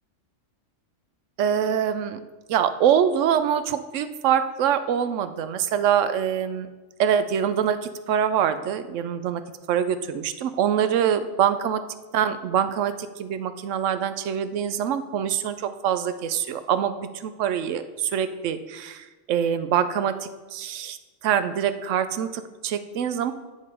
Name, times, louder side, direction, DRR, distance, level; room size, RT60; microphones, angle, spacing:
voice 1, 1.4-2.2 2.5-6.7 7.0-9.4 9.7-11.8 12.1-21.0 21.2-23.3, right 8 dB, 75° right, 11 dB, 0.9 m, -24 dB
8.8 x 4.9 x 5.4 m, 1.2 s
omnidirectional pair, 1.3 m